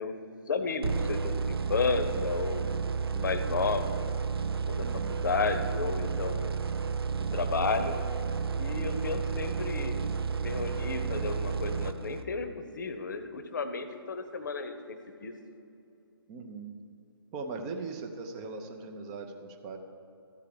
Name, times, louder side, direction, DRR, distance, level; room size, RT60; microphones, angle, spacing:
voice 1, 0.0-2.7 3.0-4.1 4.7-6.6 7.1-8.0 8.6-10.1 10.4-15.3, left 4 dB, 50° left, 9 dB, 0.8 m, -33 dB
sound 1, 0.8-12.5, right 5 dB, 70° right, 0.4 m, -32 dB
voice 2, 4.8-5.3 16.3-16.7 17.3-19.8, right 3 dB, 15° right, 4 dB, 0.5 m, -40 dB
13.5 x 4.7 x 6.8 m, 2.6 s
figure-of-eight pair, 140°, 13 cm